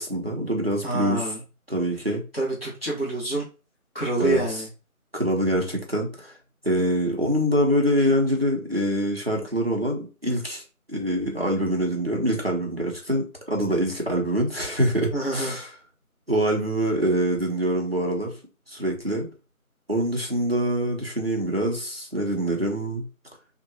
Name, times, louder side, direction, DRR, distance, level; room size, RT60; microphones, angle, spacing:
voice 1, 0.0-1.3 1.7-2.2 4.2-4.4 5.1-6.3 6.6-10.6 10.9-15.7 16.3-18.3 18.7-19.3 19.9-23.0, equal, 45° right, 0 dB, 0.6 m, -25 dB
voice 2, 0.8-1.4 2.3-3.5 3.9-4.7 15.1-15.6, right 2 dB, 40° left, -5 dB, 1.1 m, -27 dB
2.8 x 2.2 x 2.6 m, 0.33 s
figure-of-eight pair, 180°, 44 cm